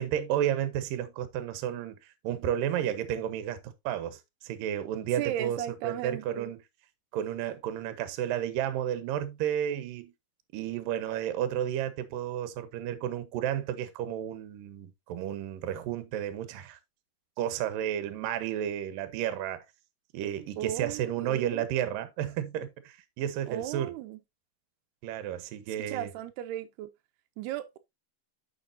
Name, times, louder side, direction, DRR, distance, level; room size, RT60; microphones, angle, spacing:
voice 1, 0.0-2.0 2.2-6.6 7.1-10.1 10.5-16.8 17.4-19.6 20.1-23.9 25.0-26.1, right 10 dB, 70° right, 2.6 m, -32 dB
voice 2, 5.2-6.5 20.6-21.7 23.5-24.2 25.8-26.9 27.4-27.8, right 12 dB, 90° right, 2.8 m, -36 dB
9.5 x 7.0 x 2.7 m
omnidirectional pair, 4.5 m